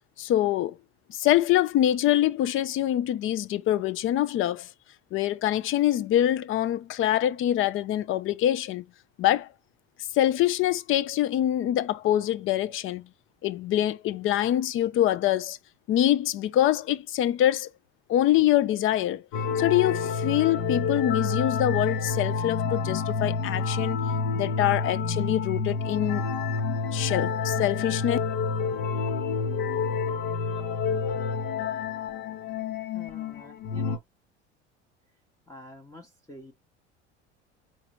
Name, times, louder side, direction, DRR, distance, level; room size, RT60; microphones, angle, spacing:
voice 1, 0.2-0.7 1.1-4.7 5.1-8.8 9.2-9.5 10.1-13.0 13.4-15.6 15.9-17.7 18.1-19.2 19.6-24.0 24.3-26.2 26.9-28.2, left 12 dB, 35° left, 0.5 m, -25 dB
sound 1, 19.3-34.0, left 5 dB, 50° left, 0.9 m, -28 dB
voice 2, 32.9-34.0 35.5-36.5, left 1 dB, 10° left, 0.9 m, -47 dB
4.7 x 3.2 x 3.0 m
figure-of-eight pair, 70°, 35 cm